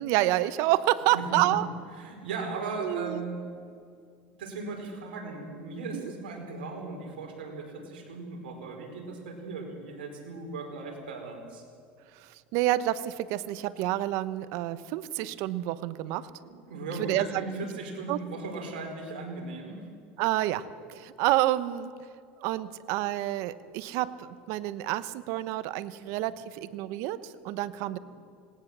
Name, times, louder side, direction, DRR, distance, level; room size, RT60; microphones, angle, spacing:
voice 1, 0.0-1.7 2.8-3.2 5.9-6.1 12.1-16.3 17.0-17.4 18.1-18.2 20.2-21.9 22.4-28.0, right 15 dB, 65° right, 15 dB, 1.0 m, -29 dB
voice 2, 2.0-3.4 4.4-11.6 16.7-19.9, right 3 dB, 90° right, 2 dB, 4.9 m, -37 dB
19.5 x 18.5 x 7.4 m, 2.2 s
supercardioid pair, 105°, 5 cm